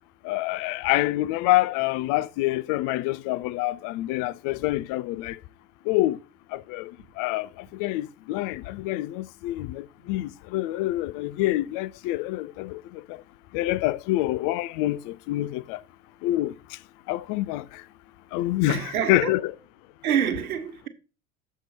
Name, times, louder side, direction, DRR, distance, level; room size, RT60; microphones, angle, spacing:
voice 1, 0.2-5.4 5.8-6.2 6.5-13.2 13.5-15.8 16.2-16.8 17.1-17.8 18.3-18.8 19.1-19.4, left 17 dB, 50° left, 0.5 m, -27 dB
voice 2, 18.7-19.4 20.0-20.9, right 8 dB, 85° right, 1.2 m, -27 dB
7.7 x 5.6 x 4.3 m
hypercardioid pair, 80°, 42 cm